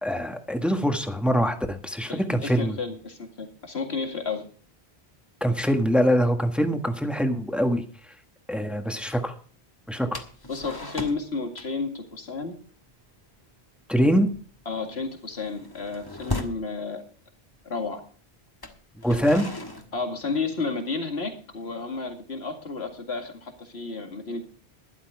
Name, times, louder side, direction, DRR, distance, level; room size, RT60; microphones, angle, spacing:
voice 1, 0.0-2.7 5.4-7.8 8.5-9.3 9.9-10.2 13.9-14.3 19.0-19.5, equal, ahead, 5 dB, 1.4 m, -23 dB
voice 2, 2.1-4.5 10.5-12.5 14.7-17.0 17.6-18.0 19.9-24.4, left 4 dB, 70° left, 5 dB, 2.3 m, -32 dB
sound 1, 10.1-11.3 11.5-11.9 12.2-12.4 12.8-13.1 13.3-13.6 14.0-16.7 17.5-17.6 18.5-20.8, left 1 dB, 20° left, 1.4 m, -37 dB
12.5 x 11.5 x 4.8 m, 0.43 s
omnidirectional pair, 1.1 m